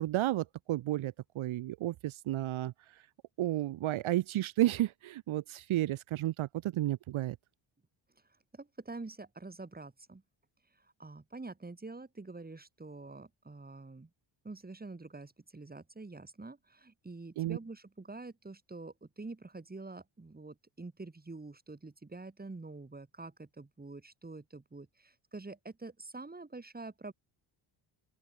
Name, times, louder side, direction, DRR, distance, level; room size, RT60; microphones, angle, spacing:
voice 1, 0.0-3.0 3.4-7.4 17.4-17.6, right 14 dB, 75° right, 1.1 m, -32 dB
voice 2, 8.5-10.2 10.8-14.1 14.4-27.1, right 3 dB, 20° right, 3.9 m, -46 dB
open air
cardioid pair, 95°, 48 cm